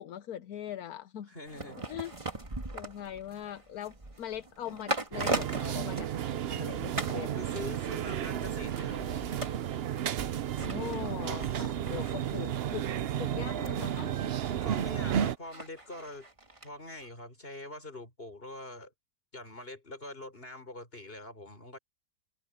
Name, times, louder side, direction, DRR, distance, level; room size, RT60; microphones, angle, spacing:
voice 1, 0.0-1.3 1.9-2.1 2.7-7.4 10.6-12.9 13.2-14.1, left 11 dB, 75° left, 1.3 m, -41 dB
voice 2, 1.3-1.9 7.1-9.3 14.6-16.3 16.6-18.9 19.3-21.8, left 1 dB, 35° left, 5.6 m, -44 dB
sound 1, 1.5-6.6 7.0-7.2 7.6-16.7 17.0-17.1, right 2 dB, 20° right, 1.9 m, -40 dB
sound 2, 5.1-15.4, right 10 dB, 60° right, 0.7 m, -33 dB
omnidirectional pair, 1.6 m